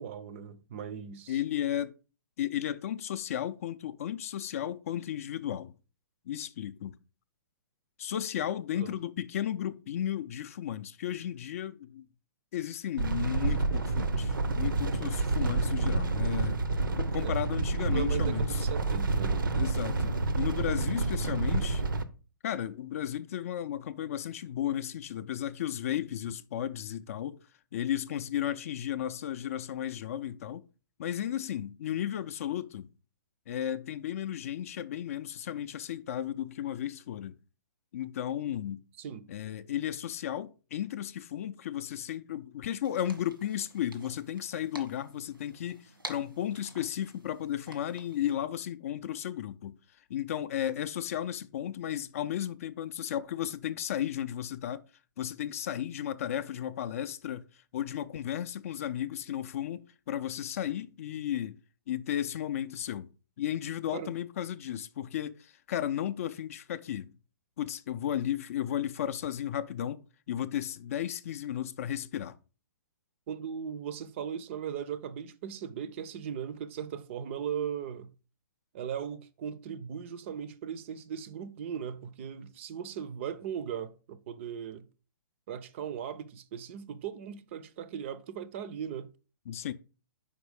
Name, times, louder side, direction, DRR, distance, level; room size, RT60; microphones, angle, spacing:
voice 1, 0.0-1.4 8.7-9.0 17.2-17.5 17.9-19.5 39.0-39.2 63.9-64.1 73.3-78.1 78.7-84.9 85.5-89.1, right 8 dB, 35° right, 0.5 m, -38 dB
voice 2, 1.3-2.0 2.4-5.7 6.3-7.0 8.0-12.1 12.5-16.6 17.0-18.7 19.5-21.8 22.4-27.4 27.7-30.6 31.0-32.9 33.5-37.4 37.9-38.8 39.3-49.7 50.1-54.8 55.2-57.4 57.7-61.6 61.9-63.1 63.4-67.1 67.6-72.4 89.5-89.7, left 10 dB, 40° left, 0.4 m, -34 dB
sound 1, 13.0-22.0, right 3 dB, 70° right, 0.7 m, -29 dB
sound 2, 42.8-48.4, right 1 dB, 90° right, 1.5 m, -49 dB
5.2 x 4.6 x 4.8 m
figure-of-eight pair, 125°, 11 cm